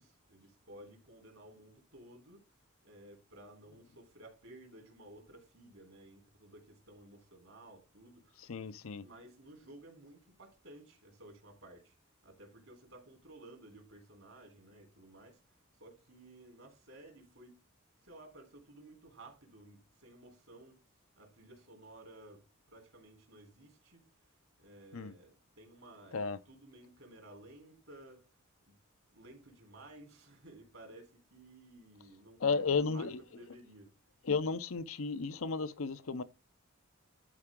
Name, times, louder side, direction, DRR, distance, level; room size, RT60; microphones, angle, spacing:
voice 1, 0.0-2.5 2.8-8.5 9.0-12.0 12.2-17.6 18.0-20.8 21.2-24.3 24.6-28.4 28.7-28.8 29.1-33.9, right 1 dB, 65° right, 3.6 m, -55 dB
voice 2, 8.5-9.1 24.9-25.1 26.1-26.4 32.4-33.2 34.2-36.2, left 4 dB, 75° left, 0.6 m, -33 dB
11.5 x 4.8 x 3.7 m
head